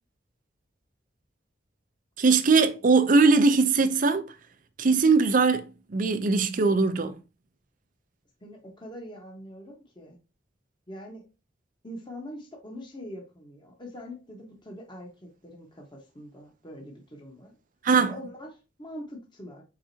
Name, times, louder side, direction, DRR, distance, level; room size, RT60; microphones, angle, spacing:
voice 1, 2.2-4.2 4.8-7.1 17.8-18.1, right 4 dB, 45° right, 0.5 m, -21 dB
voice 2, 8.4-10.2 10.9-11.2 11.8-17.5 17.9-19.6, equal, 25° left, 1.2 m, -43 dB
4.9 x 3.9 x 2.7 m
head